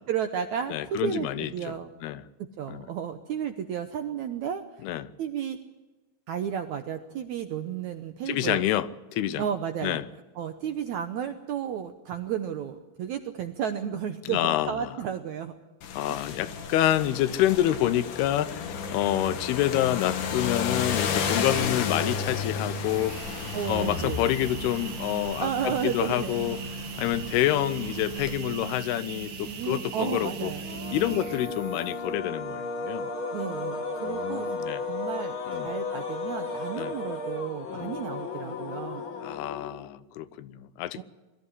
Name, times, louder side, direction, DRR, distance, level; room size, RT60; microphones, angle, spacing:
voice 1, 0.1-1.9 2.4-4.6 5.2-5.6 6.3-8.6 9.4-10.0 10.4-15.6 23.5-24.2 25.4-26.6 29.5-30.6 33.3-34.5 34.9-35.4 35.6-39.0 40.9-41.0, right 8 dB, 75° right, 1.7 m, -32 dB
voice 2, 0.7-1.7 2.0-2.2 2.7-2.9 4.8-5.1 8.3-9.4 9.8-10.1 14.3-14.9 15.9-23.2 23.7-26.6 27.0-30.5 30.9-33.1 34.0-34.8 35.5-35.7 36.8-36.9 37.7-37.9 39.2-41.0, left 13 dB, 90° left, 2.8 m, -28 dB
sound 1, 15.8-28.4, left 6 dB, 60° left, 2.9 m, -33 dB
sound 2, 22.8-32.2, right 7 dB, 55° right, 1.4 m, -39 dB
sound 3, 30.6-39.9, left 3 dB, 45° left, 2.0 m, -34 dB
22.0 x 14.0 x 9.8 m
omnidirectional pair, 4.5 m